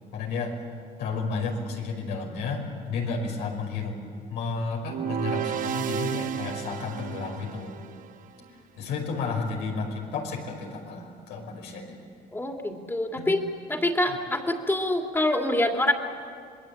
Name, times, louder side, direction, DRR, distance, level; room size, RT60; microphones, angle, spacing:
voice 1, 0.1-0.5 1.0-4.0 4.3-7.7 8.8-12.0 13.1-13.3 14.1-14.2, left 4 dB, 90° left, 1 dB, 5.5 m, -32 dB
sound 1, 4.8-8.1, right 9 dB, 50° right, 1.0 m, -32 dB
voice 2, 12.3-13.4 13.7-15.9, left 1 dB, 15° left, 3 dB, 2.7 m, -25 dB
27.0 x 21.0 x 8.7 m, 2.1 s
cardioid pair, 110°, 17 cm